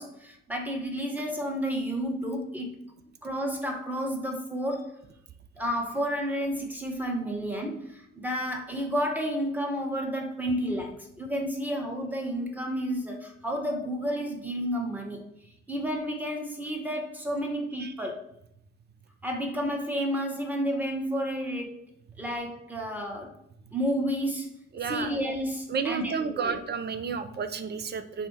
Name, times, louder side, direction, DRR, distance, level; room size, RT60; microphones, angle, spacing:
voice 1, 0.0-2.7 3.2-4.9 5.6-15.3 15.7-18.2 19.2-21.9 22.2-23.3 23.7-24.5 24.9-26.6, equal, 5° right, 1 dB, 1.1 m, -31 dB
voice 2, 24.7-25.1 25.7-28.3, right 6 dB, 30° right, 10 dB, 0.5 m, -31 dB
4.4 x 2.1 x 4.6 m, 0.75 s
figure-of-eight pair, 40°, 38 cm